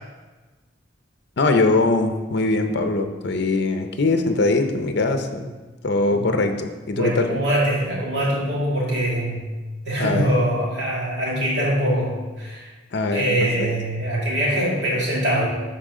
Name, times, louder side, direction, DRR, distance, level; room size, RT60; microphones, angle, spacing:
voice 1, 1.4-5.5 5.8-7.3 10.0-10.3 12.9-13.7, left 3 dB, 60° left, 7 dB, 0.6 m, -22 dB
voice 2, 6.9-9.5 9.8-12.7 13.1-15.5, right 1 dB, 65° right, -4 dB, 2.0 m, -23 dB
10.5 x 4.3 x 3.7 m, 1.3 s
head